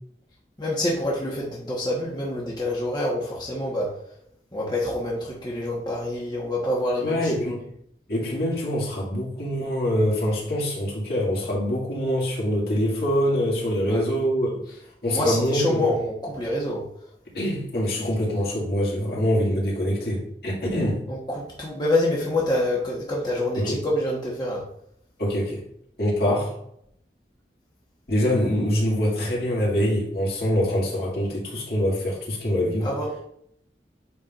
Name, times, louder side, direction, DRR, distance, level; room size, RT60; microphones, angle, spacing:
voice 1, 0.6-3.9 4.5-7.6 13.9-14.0 15.0-16.8 21.1-24.6 32.8-33.3, left 1 dB, 25° left, -4 dB, 1.3 m, -26 dB
voice 2, 7.0-7.7 8.1-14.7 15.0-15.9 17.3-21.0 23.6-23.8 25.2-25.6 26.0-26.6 28.1-32.9, equal, 60° left, -3 dB, 2.2 m, -24 dB
8.2 x 5.7 x 2.5 m, 0.70 s
head